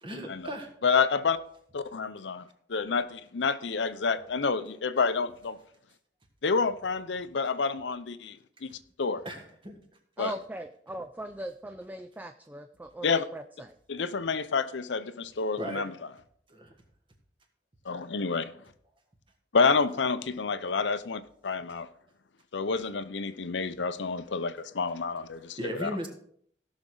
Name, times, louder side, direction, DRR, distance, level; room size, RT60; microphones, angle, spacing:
voice 1, 0.0-0.7 9.3-9.8 15.5-15.8 16.5-16.7 25.6-26.1, equal, 30° right, 1.7 m, -36 dB
voice 2, 0.8-1.4 1.7-5.6 6.4-8.7 9.0-9.2 10.2-10.3 13.0-13.3 13.9-15.9 17.9-18.5 19.5-21.9 22.5-25.9, left 5 dB, 90° left, 0.6 m, -29 dB
voice 3, 10.2-13.8, right 1 dB, 10° right, 0.4 m, -39 dB
16.5 x 6.2 x 3.9 m
head